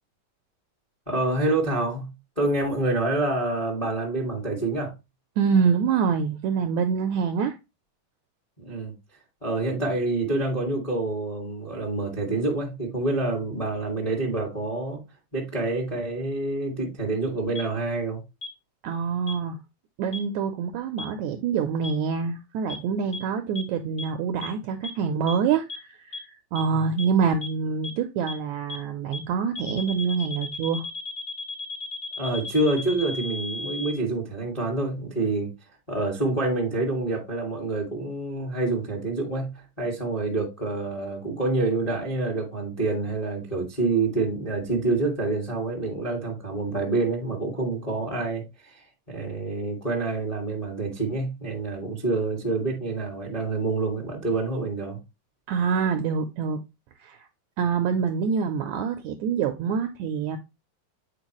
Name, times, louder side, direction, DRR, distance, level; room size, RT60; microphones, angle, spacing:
voice 1, 1.1-4.9 8.6-8.9 9.4-15.0 15.3-18.2 32.2-35.5 35.9-55.0, right 2 dB, 25° left, 0.8 m, -27 dB
voice 2, 5.4-7.6 18.8-19.6 20.0-30.8 55.5-56.6 57.0-57.2 57.6-60.4, right 6 dB, 80° right, 1.7 m, -26 dB
sound 1, 17.6-17.7 18.4-18.5 19.3-19.4 20.1-20.2 21.0-21.1 21.8-21.9 22.7-22.8 23.1-23.2 23.6-23.7 24.0-24.1 24.4-24.5 24.8-24.9 25.3-25.4 25.7-25.8 26.1-26.2 26.6-26.7 27.0-27.1 27.4-27.5 27.8-27.9 28.3-28.4 28.7-28.8 29.1-29.2 29.6-33.9, left 3 dB, 75° left, 0.7 m, -34 dB
8.1 x 4.6 x 3.0 m
omnidirectional pair, 3.8 m